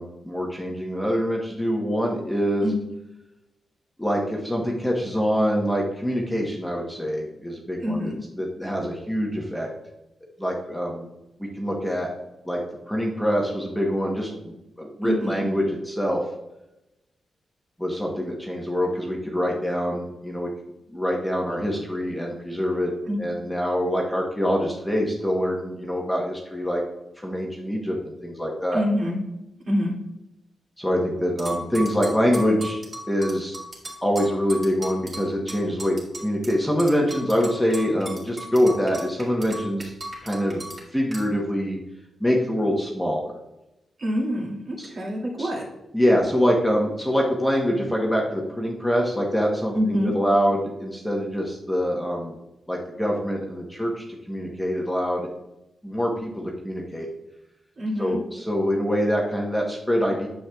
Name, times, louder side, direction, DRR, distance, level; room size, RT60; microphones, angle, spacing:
voice 1, 0.0-2.7 4.0-8.1 8.4-9.7 10.4-11.1 11.4-12.1 12.5-12.6 12.9-16.2 17.8-20.5 20.9-22.9 23.2-26.8 27.2-28.0 28.2-28.8 30.8-32.8 33.1-33.6 34.0-36.0 36.2-39.9 40.2-40.6 40.9-41.8 42.2-43.3 44.8-44.9 45.4-45.5 45.9-52.3 52.7-55.3 55.8-57.1 58.0-60.3, equal, 5° left, -2 dB, 0.9 m, -25 dB
voice 2, 7.8-8.2 15.0-15.4 23.1-23.2 28.7-29.2 29.7-29.9 44.0-45.7 49.7-50.1 57.8-58.2, equal, 45° right, -3 dB, 2.1 m, -26 dB
sound 1, 31.4-36.5 36.8-40.8 41.1-41.2, right 1 dB, 25° right, 2.0 m, -36 dB
9.5 x 7.2 x 2.3 m, 0.93 s
wide cardioid pair, 175°, 0 cm